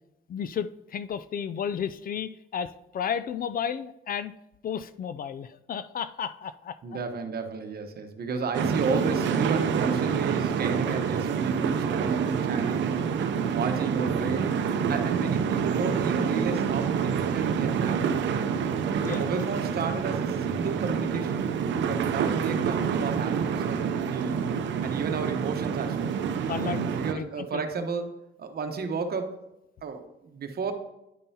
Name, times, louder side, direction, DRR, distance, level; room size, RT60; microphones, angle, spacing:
voice 1, 0.3-4.3 4.6-6.8 12.6-12.7 19.0-19.4 26.5-27.6, left 8 dB, 45° left, 13 dB, 0.4 m, -33 dB
voice 2, 6.8-13.0 13.5-14.6 14.9-18.6 19.1-24.4 24.8-26.1 26.9-28.1 28.4-29.4 29.8-30.7, right 5 dB, 50° right, 6 dB, 1.0 m, -32 dB
sound 1, 8.5-27.1, right 7 dB, 70° right, 0.6 m, -27 dB
10.0 x 5.3 x 2.8 m, 0.89 s
cardioid pair, 90°, 20 cm